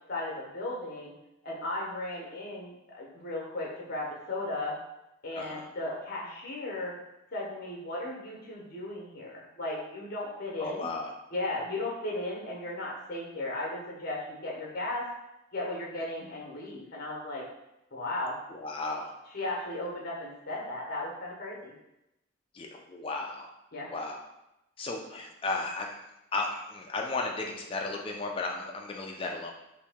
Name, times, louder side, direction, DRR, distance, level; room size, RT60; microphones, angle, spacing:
voice 1, 0.1-1.1 1.4-4.7 5.2-6.9 7.3-10.9 11.3-15.1 15.5-17.4 17.9-18.4 19.3-21.7 23.7-23.9, left 2 dB, 45° left, -3 dB, 0.8 m, -36 dB
voice 2, 5.3-5.7 10.6-11.1 16.2-16.3 18.5-19.1 22.5-23.5 23.9-24.2 24.8-26.0 26.3-29.5, left 3 dB, 25° left, 1 dB, 0.3 m, -34 dB
2.9 x 2.5 x 3.5 m, 0.89 s
head